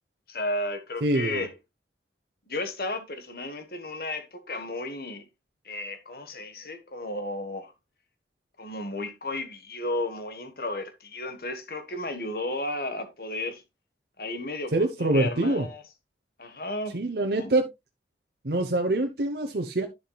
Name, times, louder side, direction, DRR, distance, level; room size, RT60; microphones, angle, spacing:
voice 1, 0.3-1.5 2.5-5.2 5.6-7.7 8.6-13.6 14.2-15.8 16.4-17.0 17.3-17.5, left 2 dB, 55° left, 1.4 m, -33 dB
voice 2, 1.0-1.5 14.7-15.7 16.9-17.7 18.4-19.9, right 2 dB, 60° right, 0.9 m, -25 dB
11.0 x 7.3 x 2.3 m
head